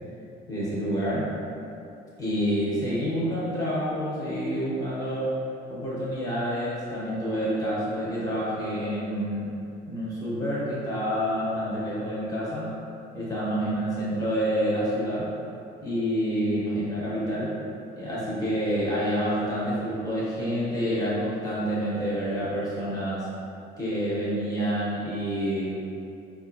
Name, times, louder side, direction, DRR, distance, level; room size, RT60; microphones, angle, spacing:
voice 1, 0.5-1.3 2.2-5.4 5.7-9.5 9.9-12.7 13.1-15.3 15.8-17.5 17.9-23.3 23.8-25.7, equal, 20° left, -9 dB, 1.2 m, -28 dB
3.9 x 2.4 x 2.6 m, 2.6 s
cardioid pair, 110°, 17 cm